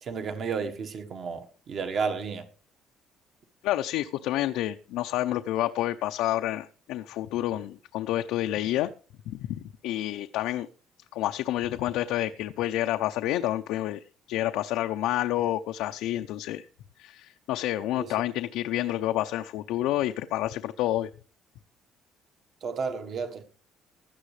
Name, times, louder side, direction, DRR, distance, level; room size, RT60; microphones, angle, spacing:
voice 1, 0.0-2.4 18.0-18.1 22.6-23.4, right 5 dB, 35° right, 1.4 m, -32 dB
voice 2, 3.6-8.9 9.3-10.7 11.1-16.6 17.0-21.1, left 14 dB, 80° left, 0.6 m, -29 dB
16.5 x 12.0 x 3.3 m
cardioid pair, 175°, 0 cm